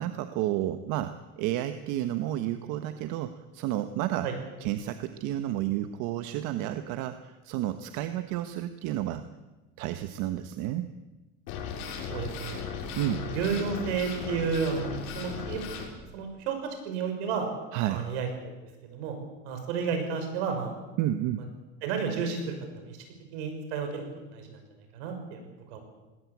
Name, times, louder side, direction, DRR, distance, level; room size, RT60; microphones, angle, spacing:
voice 1, 0.0-4.3 4.6-9.2 9.8-10.9 13.0-13.2 17.7-18.1 21.0-21.5, right 13 dB, 60° right, 9 dB, 1.2 m, -31 dB
sound 1, 11.5-15.9, left 6 dB, 70° left, 6.0 m, -37 dB
voice 2, 12.1-12.6 13.0-13.1 13.3-15.7 16.1-17.5 17.9-18.5 18.8-19.2 19.4-20.8 21.8-22.5 22.9-23.0 23.3-24.0 24.3-24.6 24.9-25.4 25.7-25.8, right 6 dB, 80° right, 6 dB, 6.1 m, -31 dB
19.5 x 18.0 x 8.6 m, 1.2 s
supercardioid pair, 135°, 33 cm